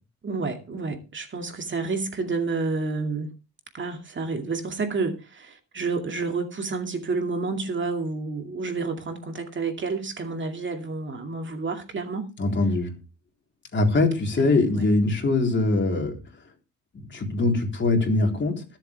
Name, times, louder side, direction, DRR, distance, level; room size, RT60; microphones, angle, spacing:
voice 1, 0.2-3.3 3.7-12.3 14.3-14.9, right 3 dB, 40° right, 2.3 m, -30 dB
voice 2, 12.4-13.0 13.7-16.2 16.9-18.6, left 2 dB, 40° left, 3.7 m, -22 dB
21.5 x 7.6 x 3.4 m
cardioid pair, 90°, 30 cm